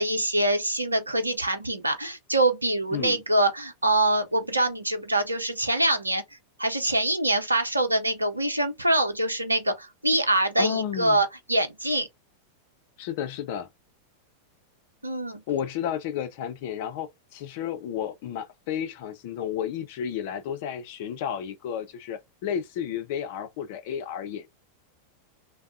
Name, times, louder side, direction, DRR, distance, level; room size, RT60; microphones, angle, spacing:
voice 1, 0.0-6.2 6.6-12.1 15.0-15.4, right 1 dB, 85° right, 0.7 m, -24 dB
voice 2, 2.9-3.2 10.6-11.2 13.0-13.7 15.5-24.5, left 9 dB, 50° left, 0.6 m, -32 dB
3.4 x 2.1 x 2.5 m
figure-of-eight pair, 90°, 0 cm